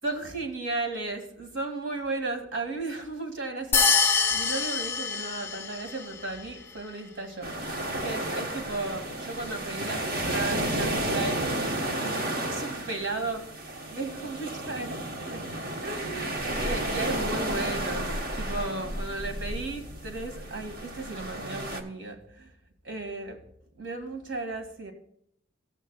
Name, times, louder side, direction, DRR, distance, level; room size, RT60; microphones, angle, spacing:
voice 1, 0.0-11.5 12.0-13.5 13.9-15.5 15.8-16.3 16.6-18.1 18.4-22.5 22.8-23.4 23.8-24.9, right 2 dB, 65° right, 2.0 m, -35 dB
sound 1, 3.7-6.0, left 5 dB, 10° left, 0.5 m, -25 dB
sound 2, 7.4-21.8, right 1 dB, 45° right, 1.2 m, -32 dB
15.0 x 8.4 x 2.3 m
head